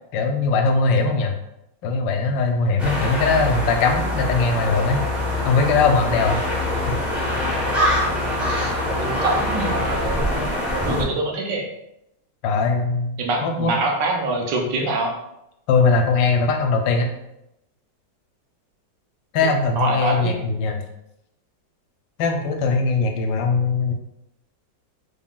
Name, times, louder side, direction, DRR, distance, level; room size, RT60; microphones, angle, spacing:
voice 1, 0.1-1.3 1.8-5.1 5.4-6.4 6.9-7.0 12.4-13.2 13.4-13.7 15.7-17.1 19.3-20.8 22.2-23.9, left 4 dB, 80° left, 4 dB, 1.2 m, -20 dB
sound 1, 2.8-11.0, left 1 dB, ahead, 0.6 m, -24 dB
voice 2, 8.5-10.5 10.7-11.7 13.2-15.1 19.8-20.4, right 2 dB, 75° right, 1 dB, 1.3 m, -25 dB
3.7 x 3.5 x 2.3 m, 0.84 s
omnidirectional pair, 2.0 m